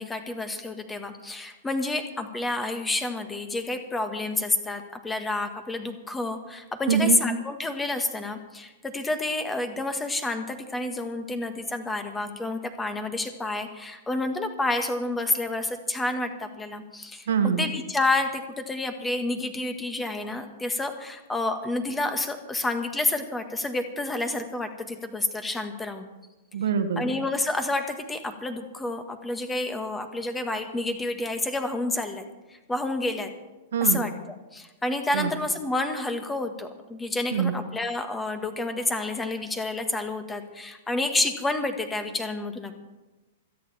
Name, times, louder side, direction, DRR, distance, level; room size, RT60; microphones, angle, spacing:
voice 1, 0.0-17.3 17.6-26.1 27.0-33.3 33.8-34.1 34.5-42.8, left 2 dB, 10° left, 8 dB, 1.7 m, -29 dB
voice 2, 6.9-7.2 17.3-17.7 26.5-27.1 33.7-34.1 35.1-35.3 37.3-37.5, right 7 dB, 65° right, 8 dB, 1.4 m, -24 dB
27.5 x 9.5 x 4.3 m, 1.1 s
figure-of-eight pair, 105°, 0 cm